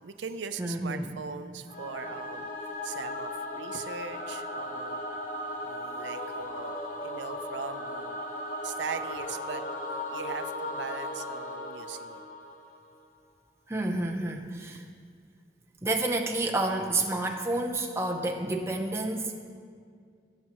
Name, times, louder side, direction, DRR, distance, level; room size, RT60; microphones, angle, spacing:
voice 1, 0.0-2.5 2.8-5.0 5.6-8.2 8.6-9.6 10.1-12.2 14.7-14.9, right 6 dB, 90° right, 10 dB, 0.5 m, -40 dB
voice 2, 0.6-1.1 13.7-14.8 15.8-19.4, right 2 dB, 15° right, 1 dB, 0.7 m, -29 dB
Singing / Musical instrument, 1.7-13.0, left 1 dB, 50° left, 0.8 m, -37 dB
17.5 x 7.2 x 3.0 m, 2.1 s
head